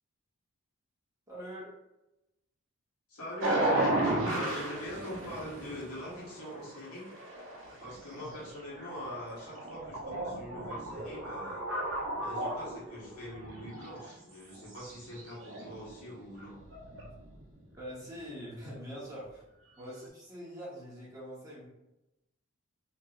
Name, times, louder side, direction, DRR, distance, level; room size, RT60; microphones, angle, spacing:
voice 1, 1.3-1.7 8.0-8.4 17.8-19.4 19.8-21.7, equal, 15° right, -6 dB, 0.9 m, -44 dB
voice 2, 3.1-3.6 4.3-7.1 7.8-11.6 12.2-16.6, left 1 dB, 90° left, -6 dB, 1.4 m, -43 dB
sound 1, 3.4-14.2 14.5-17.6, right 1 dB, 55° right, 0.7 m, -35 dB
3.4 x 2.8 x 2.4 m, 0.92 s
head